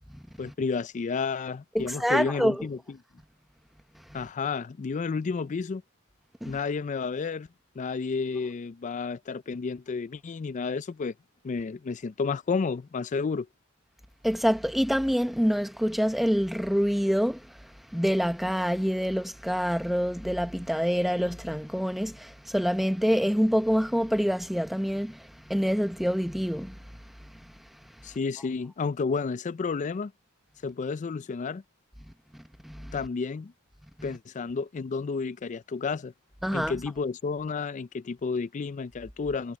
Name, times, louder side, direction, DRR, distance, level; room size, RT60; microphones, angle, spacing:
voice 1, 0.4-2.8 4.1-5.8 6.4-7.5 7.8-11.1 11.4-13.5 28.0-30.1 30.6-31.6 32.9-33.5 34.0-36.1 36.5-39.6, left 4 dB, 35° left, 0.3 m, -31 dB
voice 2, 1.7-2.6 6.4-6.6 14.2-17.5 17.9-26.8 32.6-32.9 34.0-34.1 36.4-36.7, equal, ahead, 0.8 m, -26 dB
head